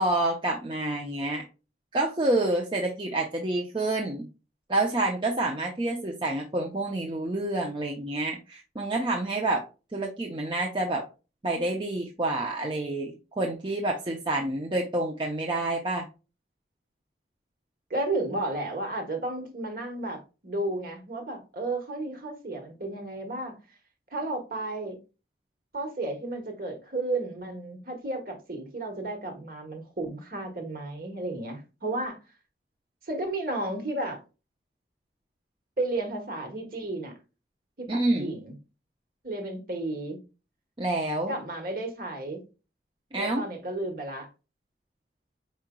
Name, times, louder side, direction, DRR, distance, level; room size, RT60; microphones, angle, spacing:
voice 1, 0.0-1.4 1.9-4.3 4.7-9.6 9.9-11.0 11.4-16.0 37.9-38.4 40.8-41.4 43.1-43.4, right 2 dB, 25° right, 0.6 m, -28 dB
voice 2, 17.9-23.6 24.1-25.0 25.7-32.2 33.0-34.2 35.8-37.1 37.8-38.6 39.2-40.2 41.3-42.4 43.2-44.3, right 2 dB, 50° right, 1.2 m, -33 dB
4.9 x 4.3 x 2.2 m
head